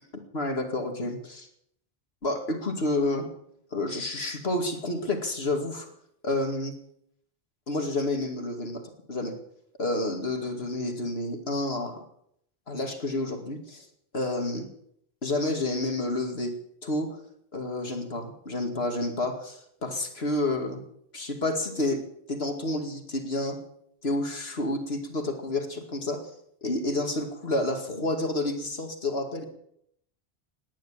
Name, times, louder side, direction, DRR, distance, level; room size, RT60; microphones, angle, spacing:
voice 1, 0.3-1.2 2.2-3.3 3.7-5.9 6.2-6.7 7.7-8.8 9.1-9.3 9.8-12.0 12.7-13.9 14.1-14.7 15.2-16.5 16.8-17.2 17.5-20.8 21.1-22.0 22.3-23.6 24.0-26.3 26.6-29.4, left 2 dB, 75° left, 5 dB, 2.5 m, -29 dB
18.5 x 10.5 x 7.3 m, 0.72 s
omnidirectional pair, 1.1 m